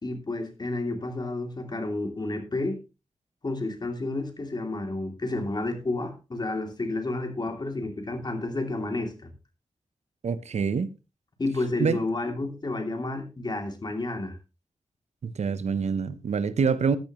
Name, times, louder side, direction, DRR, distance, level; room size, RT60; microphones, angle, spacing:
voice 1, 0.0-2.8 3.4-9.3 11.4-14.4, left 2 dB, 35° left, 2.9 m, -30 dB
voice 2, 10.2-10.9 11.8-12.0 15.2-17.0, right 6 dB, 75° right, 0.9 m, -26 dB
14.5 x 10.5 x 3.1 m
wide cardioid pair, 115°, 12 cm